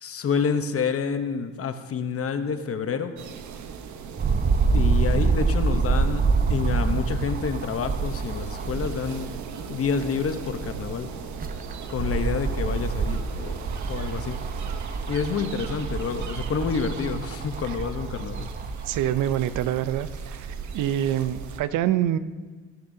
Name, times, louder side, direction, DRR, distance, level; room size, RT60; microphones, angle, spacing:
voice 1, 0.0-3.1 4.7-9.3 9.7-11.1 11.9-14.4 15.1-18.5, left 6 dB, 50° left, 8 dB, 0.9 m, -28 dB
sound 1, 3.2-21.6, right 6 dB, 70° right, 1.0 m, -38 dB
sound 2, 4.2-9.2 9.7-9.8 11.1-19.7 20.4-20.5, right 4 dB, 30° right, 0.7 m, -26 dB
voice 2, 18.8-22.2, right 11 dB, 85° right, 14 dB, 0.6 m, -26 dB
15.5 x 12.5 x 2.7 m, 1.4 s
cardioid pair, 90°, 30 cm